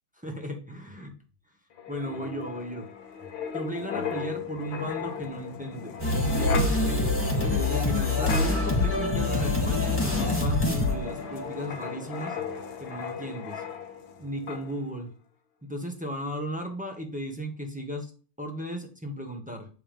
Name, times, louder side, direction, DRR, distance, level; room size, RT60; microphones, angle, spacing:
voice 1, 0.2-1.1 1.9-2.9 3.5-6.8 7.6-12.4 12.8-13.6 14.2-15.1 15.6-18.1 18.4-19.7, equal, 5° right, 2 dB, 1.2 m, -35 dB
Wind, 1.8-14.2 14.5-14.7, left 3 dB, 70° left, 1.7 m, -33 dB
sound 1, 6.0-11.7, left 2 dB, 10° left, 2.4 m, -26 dB
9.7 x 3.6 x 5.2 m, 0.38 s
omnidirectional pair, 2.3 m